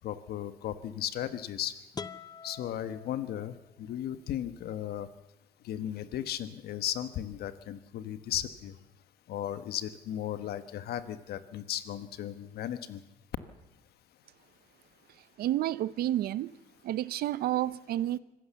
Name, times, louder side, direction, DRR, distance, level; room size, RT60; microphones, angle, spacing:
voice 1, 0.0-1.8 2.4-5.1 5.6-8.8 9.3-13.0, left 11 dB, 70° left, 1.3 m, -36 dB
sound 1, 1.9-3.9, left 5 dB, 25° left, 0.7 m, -45 dB
voice 2, 15.4-16.6 16.8-18.2, right 13 dB, 65° right, 0.7 m, -30 dB
25.5 x 15.5 x 7.0 m
cardioid pair, 110°, 17 cm